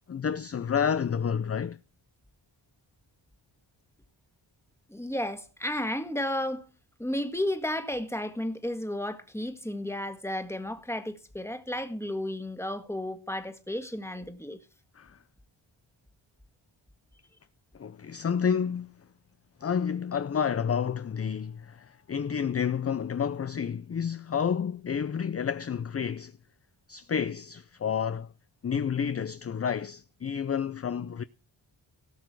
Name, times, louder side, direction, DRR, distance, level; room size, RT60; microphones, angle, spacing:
voice 1, 0.1-1.8 15.0-15.2 17.7-19.0 19.6-26.4 26.9-28.3 28.6-31.2, left 7 dB, 30° left, 0.5 m, -30 dB
voice 2, 4.9-6.7 7.0-14.6, left 1 dB, 5° left, 1.6 m, -33 dB
17.5 x 6.0 x 4.7 m
cardioid pair, 70°, 50 cm